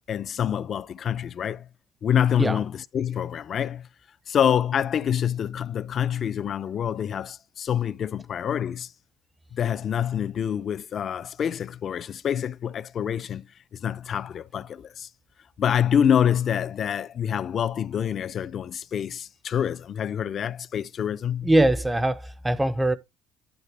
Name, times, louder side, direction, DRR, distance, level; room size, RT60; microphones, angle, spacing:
voice 1, 0.1-1.7 2.0-3.9 4.3-8.9 9.5-13.5 13.7-15.1 15.6-21.5, left 9 dB, 45° left, 0.4 m, -26 dB
voice 2, 21.4-23.0, right 1 dB, 10° right, 0.5 m, -22 dB
11.0 x 4.2 x 3.3 m
cardioid pair, 120°, 0 cm